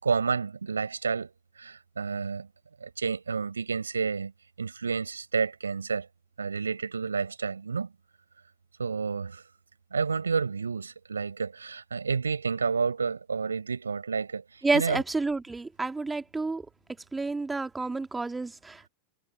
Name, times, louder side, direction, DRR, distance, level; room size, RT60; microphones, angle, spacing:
voice 1, 0.0-2.5 2.8-4.3 4.6-6.1 6.4-7.9 8.8-9.4 9.9-15.0, right 5 dB, 75° right, 4.1 m, -30 dB
voice 2, 14.6-16.6 17.1-18.9, right 3 dB, 10° right, 1.9 m, -29 dB
figure-of-eight pair, 90°, 0 cm